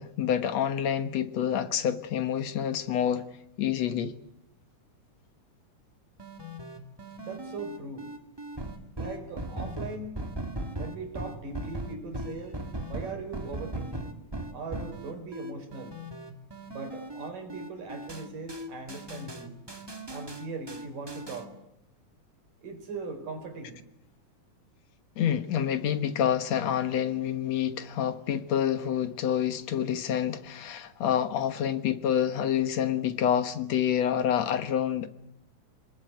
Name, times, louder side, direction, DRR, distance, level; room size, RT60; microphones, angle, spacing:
voice 1, 0.0-3.3 3.6-4.1 25.2-35.1, left 9 dB, 60° left, 2.3 m, -27 dB
sound 1, 6.2-21.5, right 1 dB, 10° right, 1.3 m, -38 dB
voice 2, 7.2-8.1 9.0-10.3 10.8-14.2 14.5-16.0 16.7-19.5 20.1-21.6 22.6-23.8, right 3 dB, 85° right, 6.2 m, -40 dB
27.0 x 20.0 x 9.5 m
omnidirectional pair, 3.7 m